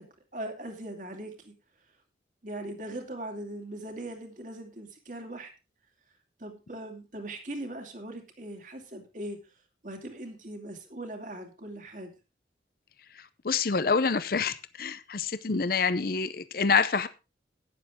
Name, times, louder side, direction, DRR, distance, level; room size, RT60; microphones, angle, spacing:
voice 1, 0.3-1.5 2.4-5.5 6.4-9.4 9.8-12.1, right 1 dB, 45° right, 2.5 m, -40 dB
voice 2, 13.4-17.1, left 5 dB, 55° left, 0.7 m, -27 dB
12.0 x 10.0 x 3.6 m
head